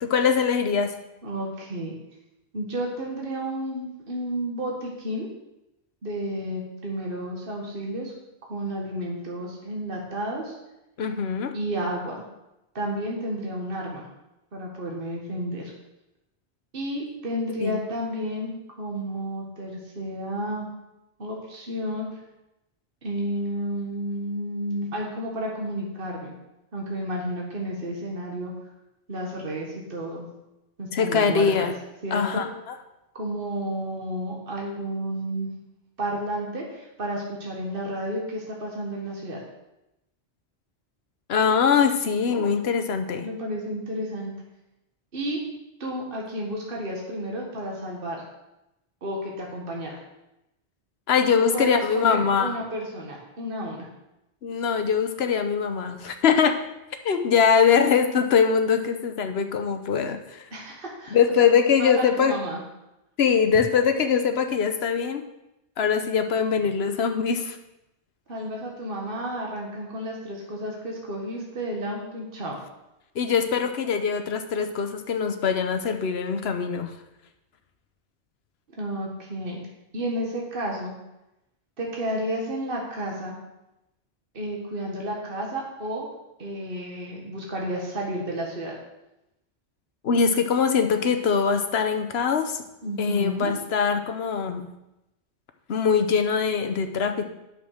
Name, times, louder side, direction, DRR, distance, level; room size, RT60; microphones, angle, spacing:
voice 1, 0.0-0.9 11.0-11.5 17.6-17.8 30.9-31.8 32.1-32.7 41.3-43.3 51.1-52.6 54.4-56.6 57.0-60.4 61.1-62.4 63.2-65.2 65.8-67.6 73.1-76.9 90.0-92.6 93.0-94.6 95.7-97.3, left 6 dB, 65° left, 7 dB, 1.1 m, -22 dB
voice 2, 1.2-1.9 2.5-5.3 6.0-8.1 8.5-10.6 11.5-12.2 12.8-14.1 14.5-15.7 16.7-20.7 21.2-22.2 23.0-26.3 26.7-28.5 29.1-30.3 30.8-31.7 32.0-32.4 33.1-35.5 36.0-39.4 43.2-44.3 45.1-45.4 45.8-48.2 49.0-50.0 51.3-53.9 60.5-61.2 61.8-62.6 68.3-72.6 78.8-79.6 79.9-80.9 81.8-83.4 84.3-86.1 86.4-88.7 92.8-93.5, right 1 dB, 55° right, -1 dB, 1.8 m, -31 dB
8.7 x 6.2 x 6.5 m, 0.91 s
omnidirectional pair, 1.2 m